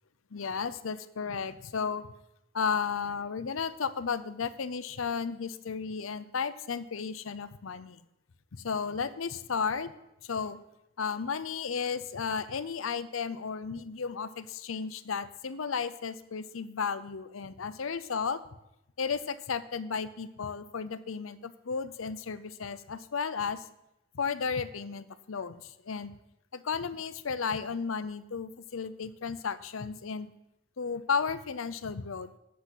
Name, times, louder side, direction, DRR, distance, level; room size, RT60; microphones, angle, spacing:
voice 1, 0.3-2.1 2.5-8.0 8.5-9.9 10.2-10.6 11.0-18.4 19.0-23.6 24.1-26.1 26.5-30.3 30.8-32.3, left 5 dB, 70° left, 13 dB, 0.6 m, -34 dB
8.3 x 7.5 x 8.0 m, 0.87 s
head